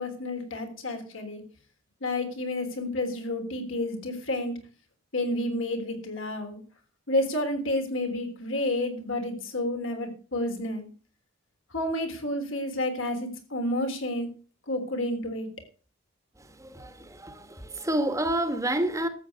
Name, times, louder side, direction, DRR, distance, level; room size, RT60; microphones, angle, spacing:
voice 1, 0.0-1.4 2.0-4.5 5.1-6.6 7.1-10.9 11.7-14.3 14.7-15.5, left 1 dB, 70° left, 3.6 m, -30 dB
voice 2, 16.6-19.1, right 1 dB, 15° right, 1.3 m, -29 dB
13.0 x 8.2 x 6.8 m
head